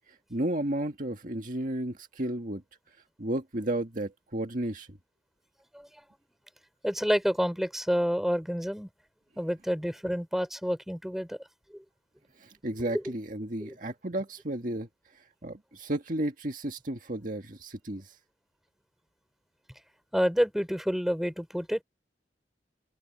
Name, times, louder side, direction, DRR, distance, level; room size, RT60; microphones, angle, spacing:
voice 1, 0.1-2.6 3.2-5.0 12.4-18.2, right 1 dB, 45° right, 1.8 m, -33 dB
voice 2, 6.8-8.9 9.4-11.4 11.7-11.8 13.6-13.7 20.1-21.8, equal, ahead, 3.7 m, -28 dB
open air
head